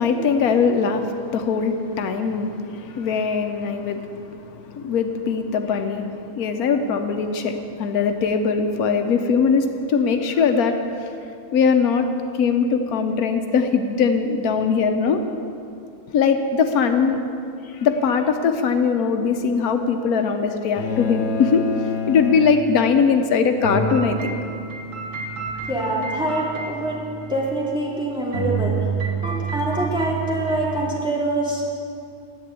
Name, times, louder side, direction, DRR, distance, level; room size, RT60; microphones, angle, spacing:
voice 1, 0.0-11.1 11.5-12.1 12.4-15.2 16.1-17.2 17.6-21.6 22.1-24.3, left 5 dB, 85° left, 6 dB, 1.3 m, -21 dB
sound 1, 20.8-23.3, left 6 dB, 70° left, 1.2 m, -28 dB
sound 2, 23.6-28.0 28.3-31.0, right 4 dB, 60° right, 1.6 m, -29 dB
voice 2, 25.7-27.0 27.3-28.8 29.2-31.7, right 1 dB, 5° right, -5 dB, 2.4 m, -25 dB
10.5 x 8.6 x 8.2 m, 2.5 s
omnidirectional pair, 1.5 m